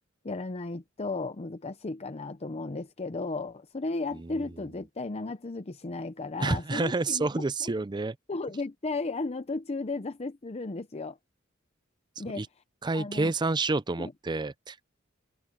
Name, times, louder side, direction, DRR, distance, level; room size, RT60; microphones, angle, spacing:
voice 1, 0.2-7.3 7.6-7.7 8.3-11.2 12.2-12.4 12.9-13.3 14.0-14.1, left 3 dB, 30° left, 0.7 m, -34 dB
voice 2, 4.1-4.4 6.4-8.2 12.3-12.5 12.8-14.9, right 3 dB, 20° right, 0.5 m, -29 dB
open air
head